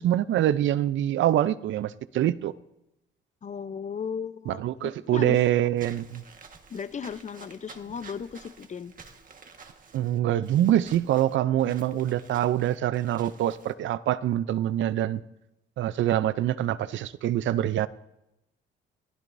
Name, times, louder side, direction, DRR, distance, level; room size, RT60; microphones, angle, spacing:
voice 1, 0.0-2.5 4.5-6.2 9.9-15.2 15.8-17.9, right 12 dB, 70° right, 0.6 m, -25 dB
voice 2, 3.4-4.6 5.1-5.4 6.7-8.9, left 6 dB, 35° left, 0.7 m, -35 dB
Walk footsteps / Squeak, 5.8-13.7, right 4 dB, 45° right, 1.6 m, -50 dB
21.5 x 15.0 x 2.7 m
cardioid pair, 90°, 20 cm